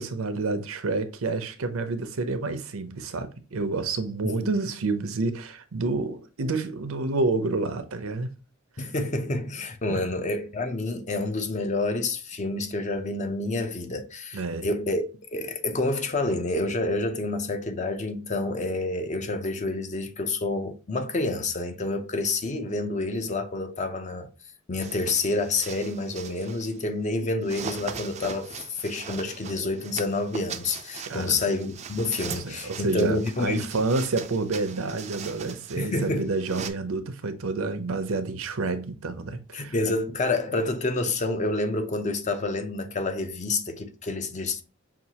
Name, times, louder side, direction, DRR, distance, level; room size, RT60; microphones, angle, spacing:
voice 1, 0.0-8.3 8.8-8.9 9.9-10.0 14.3-14.7 27.2-27.3 31.1-31.4 32.3-39.7, right 3 dB, 85° right, 0.6 m, -29 dB
voice 2, 4.2-4.5 8.8-15.1 15.3-24.3 24.7-33.8 35.8-36.3 39.5-44.6, left 2 dB, 35° left, 0.6 m, -28 dB
sound 1, 24.8-26.8 27.4-36.7, right 6 dB, 30° right, 0.4 m, -40 dB
5.8 x 2.4 x 2.8 m
head